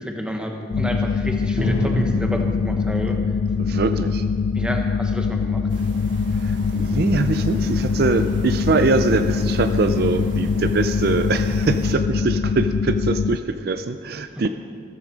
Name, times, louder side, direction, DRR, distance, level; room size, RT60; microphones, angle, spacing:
voice 1, 0.0-3.2 4.5-5.7, equal, 5° right, 2 dB, 1.1 m, -30 dB
sound 1, 0.7-13.4, left 5 dB, 65° left, 0.4 m, -23 dB
Drum, 1.6-5.6, right 1 dB, 35° right, 4.0 m, -30 dB
voice 2, 3.6-4.3 6.3-14.5, right 3 dB, 50° right, 9 dB, 0.4 m, -23 dB
sound 2, 5.7-12.0, right 1 dB, 70° right, 1.4 m, -36 dB
14.0 x 13.5 x 5.1 m, 2.2 s
head